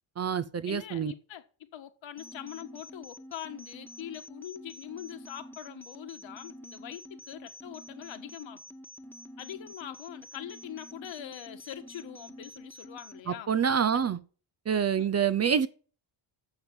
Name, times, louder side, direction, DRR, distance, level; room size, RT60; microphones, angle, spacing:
voice 1, 0.2-1.1 13.3-14.2 14.7-15.7, right 7 dB, 30° right, 0.5 m, -27 dB
voice 2, 0.7-8.6 9.4-13.5 13.9-14.1 15.0-15.1, left 11 dB, 65° left, 1.6 m, -43 dB
sound 1, 2.2-13.2, equal, 5° left, 1.3 m, -48 dB
9.6 x 7.1 x 7.9 m
cardioid pair, 145°, 49 cm